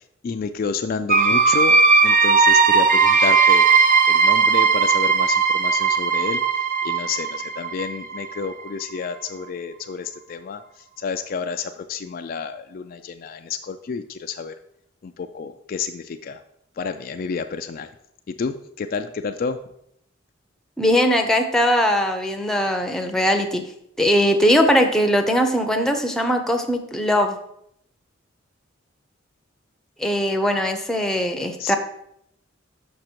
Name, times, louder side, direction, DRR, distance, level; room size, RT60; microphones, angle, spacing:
voice 1, 0.0-3.7 4.1-6.4 6.8-10.6 11.0-14.6 15.0-16.4 16.8-17.9 18.3-19.6 31.6-31.8, left 5 dB, 45° left, 8 dB, 0.3 m, -30 dB
sound 1, 1.1-8.7, right 5 dB, 45° right, 0.6 m, -17 dB
voice 2, 20.8-23.6 24.0-27.4 30.0-31.8, equal, 5° left, 4 dB, 0.6 m, -20 dB
6.3 x 5.9 x 4.5 m, 0.75 s
head